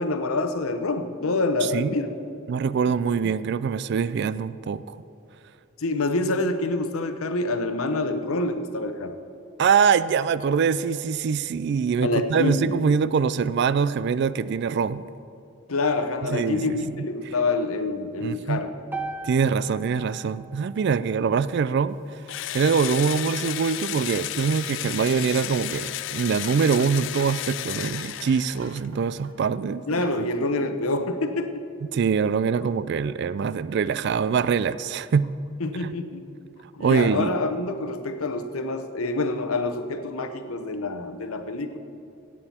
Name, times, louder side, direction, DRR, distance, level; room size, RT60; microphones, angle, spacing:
voice 1, 0.0-2.1 2.8-2.9 5.8-9.2 12.0-12.8 15.7-18.7 29.9-31.6 35.6-36.2 36.7-41.8, left 2 dB, 85° left, 8 dB, 0.8 m, -27 dB
voice 2, 1.6-2.0 2.5-5.0 9.6-15.1 16.3-17.1 18.2-18.6 19.2-22.2 22.5-30.0 31.9-35.3 35.8-35.9 36.8-37.3, right 6 dB, 50° right, 16 dB, 0.3 m, -24 dB
sound 1, 18.9-23.1, right 3 dB, 10° right, 0.7 m, -40 dB
Engine / Drill, 22.3-28.9, left 13 dB, 60° left, 0.3 m, -33 dB
sound 2, 26.4-27.7 28.6-29.5 29.9-30.5, right 2 dB, 85° right, 1.4 m, -46 dB
16.5 x 8.7 x 4.3 m, 2.6 s
head